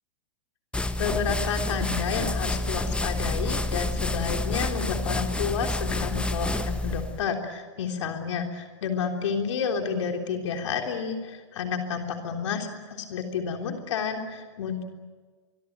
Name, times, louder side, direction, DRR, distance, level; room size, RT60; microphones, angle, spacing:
sound 1, 0.7-7.2, left 2 dB, 5° left, 1.3 m, -29 dB
voice 1, 1.0-14.8, left 6 dB, 70° left, 4 dB, 3.5 m, -30 dB
24.5 x 22.5 x 9.3 m, 1.4 s
hypercardioid pair, 115°, 16 cm